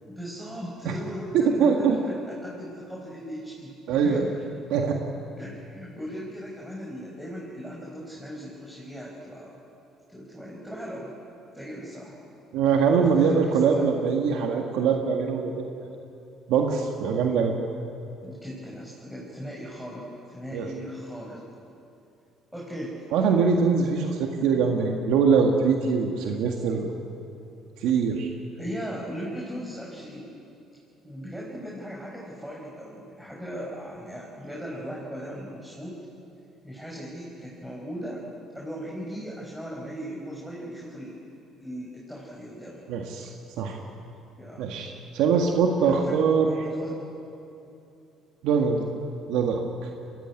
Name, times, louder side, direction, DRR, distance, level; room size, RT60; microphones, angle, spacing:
voice 1, 0.1-3.7 4.0-4.2 5.4-9.5 10.1-11.1 11.5-12.2 12.9-13.4 13.7-13.9 18.2-21.4 22.5-23.0 28.6-30.3 31.0-36.0 36.6-38.2 38.5-41.2 41.6-42.9 44.3-44.7 45.8-47.0, equal, 5° right, -4 dB, 5.5 m, -38 dB
voice 2, 1.6-2.0 3.9-4.3 4.7-5.0 12.5-15.7 16.5-17.6 20.5-20.7 23.1-26.9 27.8-28.3 42.9-43.8 44.6-46.5 48.4-48.9 49.3-49.9, right 5 dB, 75° right, 2 dB, 1.7 m, -23 dB
22.0 x 16.0 x 9.7 m, 2.7 s
supercardioid pair, 75°, 0 cm